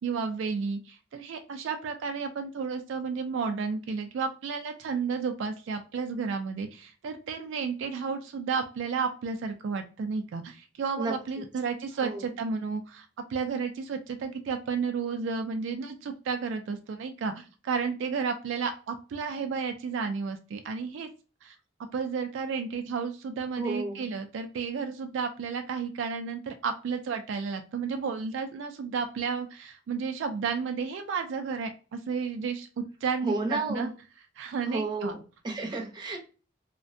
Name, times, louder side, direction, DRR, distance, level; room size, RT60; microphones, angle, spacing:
voice 1, 0.0-21.1 21.4-21.5 21.9-33.9 34.4-35.1, right 5 dB, 70° right, 6 dB, 0.3 m, -32 dB
voice 2, 23.6-24.0 33.2-33.9 34.7-35.2 35.4-36.2, right 2 dB, 25° right, 0 dB, 0.6 m, -31 dB
2.5 x 2.1 x 2.5 m, 0.35 s
head